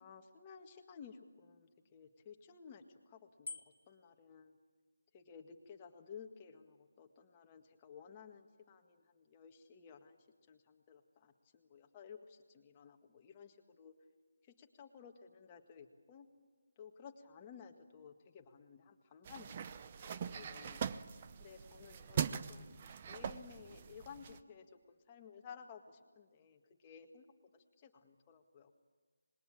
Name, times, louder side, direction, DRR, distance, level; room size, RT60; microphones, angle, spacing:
voice 1, 0.0-4.5 5.1-13.9 14.4-16.3 16.8-20.9 21.4-22.8 23.1-27.3 27.5-28.7, left 6 dB, 20° left, 4 dB, 1.8 m, -56 dB
Bicycle bell, 3.4-4.1, left 4 dB, 65° left, 1.8 m, -47 dB
sound 1, 19.3-24.4, right 8 dB, 25° right, 0.7 m, -42 dB
26.0 x 21.0 x 8.7 m, 1.4 s
figure-of-eight pair, 170°, 0 cm